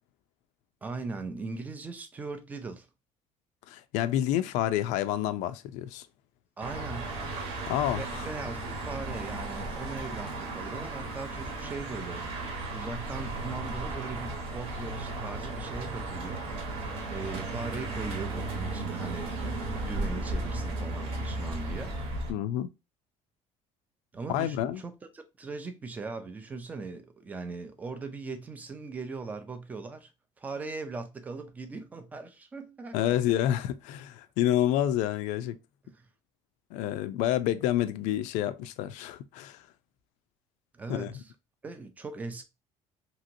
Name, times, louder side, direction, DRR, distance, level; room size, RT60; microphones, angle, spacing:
voice 1, 0.8-2.9 6.6-7.2 8.0-16.5 17.1-21.9 24.1-30.1 30.4-33.2 35.8-36.1 40.7-41.3 41.6-42.4, right 4 dB, 15° right, 0.3 m, -40 dB
voice 2, 3.7-6.1 7.7-8.3 22.3-22.7 24.3-24.8 32.9-35.6 36.7-39.7 40.9-41.1, left 12 dB, 85° left, 0.4 m, -28 dB
sound 1, 6.6-22.3, right 2 dB, 55° right, 1.0 m, -35 dB
2.9 x 2.8 x 2.5 m
cardioid pair, 180°, 12 cm